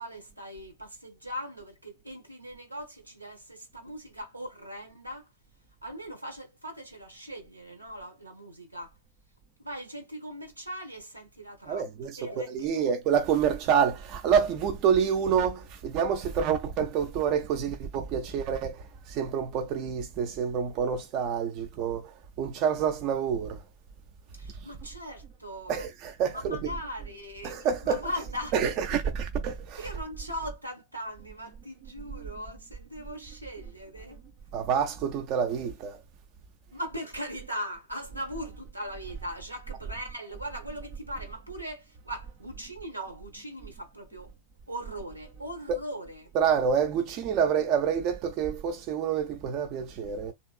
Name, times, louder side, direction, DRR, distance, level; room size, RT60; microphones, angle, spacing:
voice 1, 0.0-5.3 5.8-8.9 9.6-12.9 24.3-25.9 26.3-28.5 28.9-29.0 29.8-34.2 36.7-44.4 44.7-46.3, equal, 85° right, 1.1 m, -40 dB
voice 2, 11.7-23.6 24.6-24.7 25.7-26.8 27.4-28.1 28.5-30.0 32.2-32.3 34.5-36.0 45.7-45.8 46.3-50.3, right 7 dB, 40° right, 0.5 m, -28 dB
3.0 x 2.8 x 2.4 m
figure-of-eight pair, 90°, 0 cm